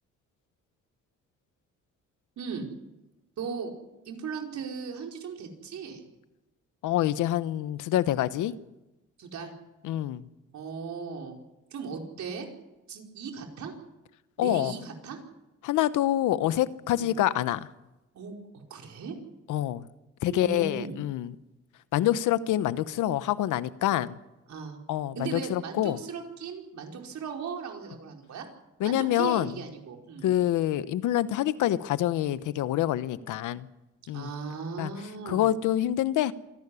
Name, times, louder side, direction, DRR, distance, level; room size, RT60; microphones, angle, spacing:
voice 1, 2.4-2.7 3.4-3.7 4.0-6.0 9.2-9.5 10.5-11.4 11.7-12.5 12.9-13.7 14.4-15.2 16.9-17.1 18.1-19.1 20.3-21.0 24.5-24.8 25.1-28.4 28.8-30.3 34.1-35.5, right 5 dB, 65° right, 4.9 m, -37 dB
voice 2, 6.8-8.5 9.8-10.2 14.4-14.7 15.6-17.7 19.5-19.8 20.2-21.4 21.9-24.2 24.9-26.0 28.8-29.5 30.2-33.7 34.1-34.3 34.8-34.9 35.3-36.3, left 13 dB, 85° left, 1.0 m, -26 dB
27.0 x 12.0 x 9.9 m
cardioid pair, 90°, 30 cm